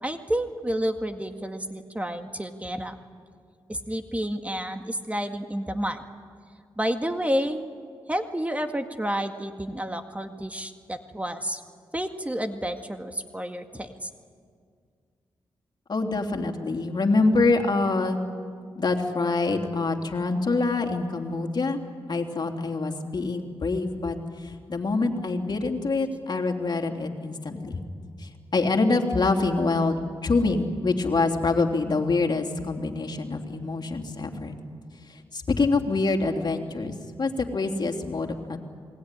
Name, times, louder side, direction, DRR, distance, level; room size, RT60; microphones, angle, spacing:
voice 1, 0.0-3.0 3.7-6.0 6.8-7.7 8.1-11.6 11.9-14.1, equal, 15° right, 6 dB, 2.0 m, -30 dB
voice 2, 15.9-18.2 18.7-21.8 22.1-27.8 28.2-34.6 35.1-38.6, left 3 dB, 50° left, 3 dB, 3.2 m, -25 dB
28.0 x 20.5 x 10.0 m, 2.1 s
cardioid pair, 50°, 9 cm